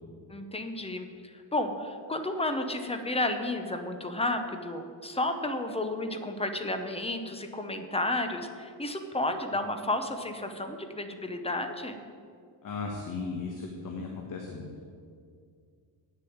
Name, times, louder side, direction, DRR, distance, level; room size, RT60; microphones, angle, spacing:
voice 1, 0.3-12.0, left 2 dB, 15° left, 6 dB, 0.7 m, -32 dB
voice 2, 12.6-14.9, left 4 dB, 45° left, 1 dB, 1.2 m, -36 dB
8.9 x 6.8 x 8.6 m, 2.2 s
cardioid pair, 155°, 46 cm